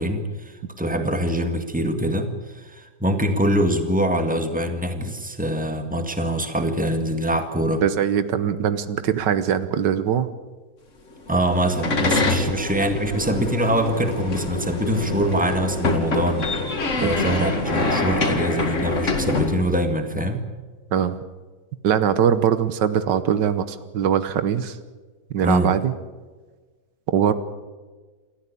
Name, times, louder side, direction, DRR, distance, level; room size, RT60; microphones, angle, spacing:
voice 1, 0.0-7.8 11.3-16.5 17.0-20.4 25.4-25.7, right 1 dB, 5° right, 6 dB, 1.8 m, -24 dB
voice 2, 7.8-10.3 17.0-17.1 20.9-21.2 21.8-24.8 25.3-25.9 27.1-27.3, right 8 dB, 90° right, 13 dB, 1.7 m, -21 dB
sound 1, 11.3-19.6, left 3 dB, 45° left, 2.4 m, -25 dB
28.0 x 13.5 x 8.5 m, 1.4 s
omnidirectional pair, 1.8 m